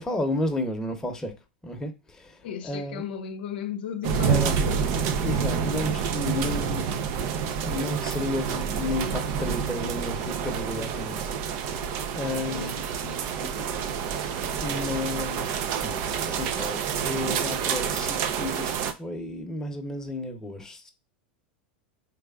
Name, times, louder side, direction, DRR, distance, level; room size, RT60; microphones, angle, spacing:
voice 1, 0.0-1.3 1.6-3.0 4.3-4.6 4.9-11.2 12.1-12.8 14.6-16.0 16.3-20.9, left 1 dB, 10° left, 0.8 m, -32 dB
voice 2, 2.4-5.1 12.5-12.8 13.0-13.9, left 8 dB, 75° left, 0.6 m, -36 dB
sound 1, 4.0-18.9, right 7 dB, 50° right, 0.5 m, -28 dB
3.4 x 3.4 x 2.3 m
hypercardioid pair, 105°, 5 cm